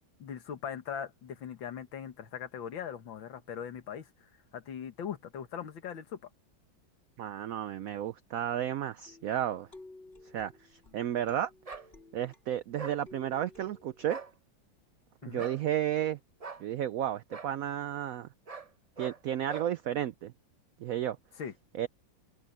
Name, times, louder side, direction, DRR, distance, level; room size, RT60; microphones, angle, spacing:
voice 1, 0.2-6.2 15.2-15.5 21.4-21.5, left 8 dB, 80° left, 2.3 m, -40 dB
voice 2, 7.2-9.7 10.3-10.5 10.9-11.5 12.1-14.2 15.2-16.2 16.6-18.3 19.0-20.3 20.8-21.2 21.7-21.9, right 11 dB, 80° right, 0.7 m, -32 dB
sound 1, 9.0-12.6 13.0-14.3, left 2 dB, 30° left, 4.2 m, -55 dB
sound 2, 11.6-11.9 12.8-13.0 14.0-14.3 15.4-15.6 16.4-16.6 17.3-17.5 18.5-18.7 19.0-19.2 19.5-19.7, right 5 dB, 30° right, 0.8 m, -42 dB
omnidirectional pair, 2.1 m